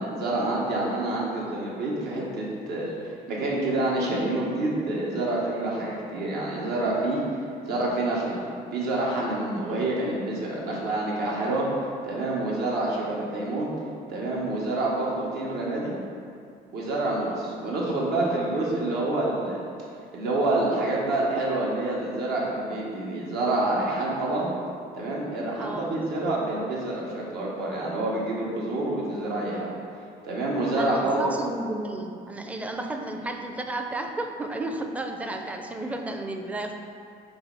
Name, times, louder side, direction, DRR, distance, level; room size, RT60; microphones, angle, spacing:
voice 1, 0.0-7.2 7.6-11.7 12.0-13.7 14.1-15.9 16.7-19.6 20.1-24.5 24.9-29.7 30.2-31.3, right 2 dB, 75° right, -4 dB, 1.4 m, -27 dB
voice 2, 25.6-25.9 30.8-36.7, right 2 dB, 10° right, 4 dB, 0.4 m, -32 dB
5.6 x 4.1 x 4.1 m, 2.4 s
cardioid pair, 110°, 17 cm